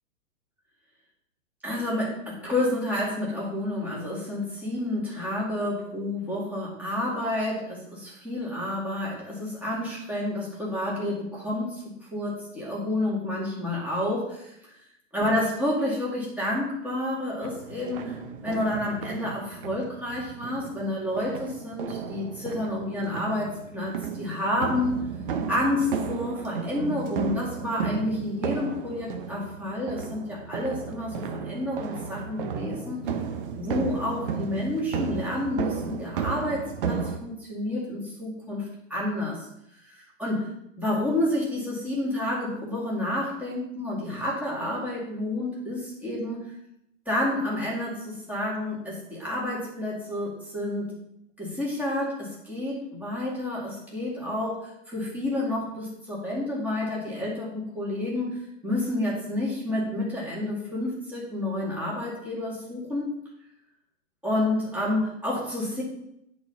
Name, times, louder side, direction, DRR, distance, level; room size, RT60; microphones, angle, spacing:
voice 1, 1.6-11.8 12.1-14.5 15.1-18.2 18.4-25.1 25.5-31.2 31.5-33.0 33.5-39.5 39.7-40.5 40.8-46.5 47.1-50.9 51.4-63.1 64.2-65.8, left 1 dB, 5° right, -6 dB, 2.2 m, -29 dB
sound 1, 17.4-37.2, right 6 dB, 40° right, 0.9 m, -34 dB
9.8 x 4.3 x 5.4 m, 0.78 s
hypercardioid pair, 155°, 40 cm